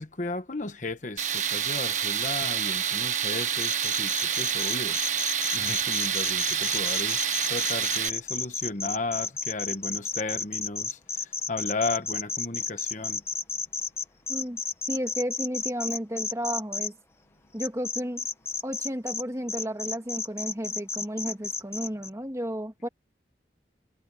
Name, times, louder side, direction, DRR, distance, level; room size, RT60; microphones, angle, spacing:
voice 1, 0.0-5.0 5.5-13.2, left 3 dB, 45° left, 1.2 m, -34 dB
Tools, 1.2-8.1, right 8 dB, 40° right, 1.4 m, -28 dB
sound 1, 3.6-16.9 17.6-19.2 19.5-22.1, left 4 dB, 15° left, 1.1 m, -32 dB
voice 2, 14.3-14.6 14.9-16.9 17.5-18.2 18.6-22.9, equal, 15° right, 2.2 m, -33 dB
head